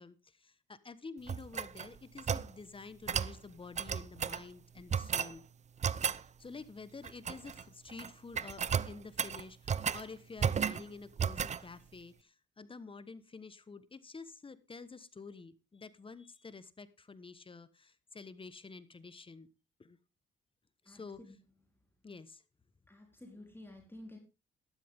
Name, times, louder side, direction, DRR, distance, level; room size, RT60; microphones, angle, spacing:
voice 1, 0.0-5.4 6.1-19.5 19.8-20.0 20.8-21.4 22.0-22.4, left 4 dB, 25° left, 15 dB, 1.2 m, -49 dB
sound 1, 1.3-2.5 3.1-3.4 3.8-4.4 4.9-5.3 5.8-6.2 7.0-7.6 7.9-8.1 8.4-10.0 10.4-10.9 11.2-11.6, right 7 dB, 35° right, 0.6 m, -33 dB
voice 2, 20.9-21.3 22.9-24.2, left 1 dB, 10° left, 2 dB, 3.8 m, -51 dB
13.0 x 12.5 x 3.6 m, 0.28 s
cardioid pair, 90°, 20 cm